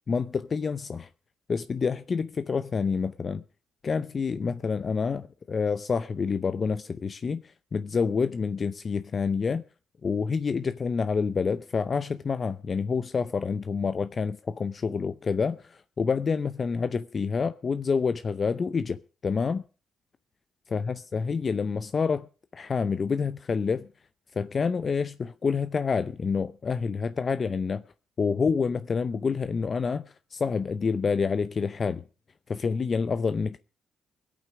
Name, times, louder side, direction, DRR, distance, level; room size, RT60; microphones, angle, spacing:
voice 1, 0.1-1.1 1.5-3.4 3.8-9.6 10.0-19.6 20.7-23.9 24.4-27.8 28.2-32.0 32.5-33.6, left 5 dB, 40° left, 0.6 m, -28 dB
21.5 x 8.5 x 4.8 m
cardioid pair, 90°, 0 cm